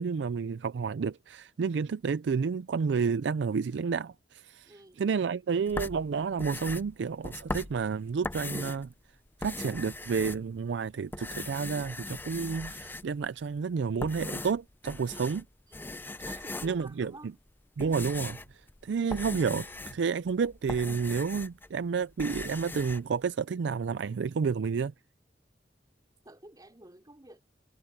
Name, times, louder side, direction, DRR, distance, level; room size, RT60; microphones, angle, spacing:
voice 1, 0.0-8.9 9.4-15.4 16.6-17.3 17.8-24.9, right 5 dB, 70° right, 0.4 m, -30 dB
voice 2, 4.6-5.0 15.7-17.3 18.9-19.0 26.2-27.4, right 1 dB, 20° right, 3.3 m, -51 dB
sound 1, 5.7-8.9 9.3-10.8 11.1-13.3 13.8-15.5 15.7-16.9 17.5-21.7 22.0-23.0, left 2 dB, 10° left, 0.6 m, -39 dB
head